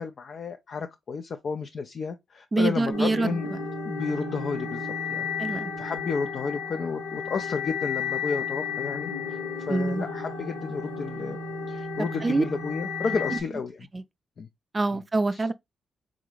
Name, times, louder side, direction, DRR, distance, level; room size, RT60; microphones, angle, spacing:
voice 1, 0.0-3.5 3.8-9.4 9.7-11.4 11.7-13.8 14.4-14.5 15.3-15.5, left 5 dB, 60° left, 0.3 m, -32 dB
voice 2, 2.5-3.6 5.4-5.7 9.7-10.1 12.2-12.4 13.3-13.4 13.9-14.0 14.7-15.5, right 3 dB, 35° right, 0.3 m, -25 dB
sound 1, 2.9-13.4, left 5 dB, 80° left, 1.1 m, -33 dB
3.7 x 2.5 x 3.0 m
hypercardioid pair, 40°, 0 cm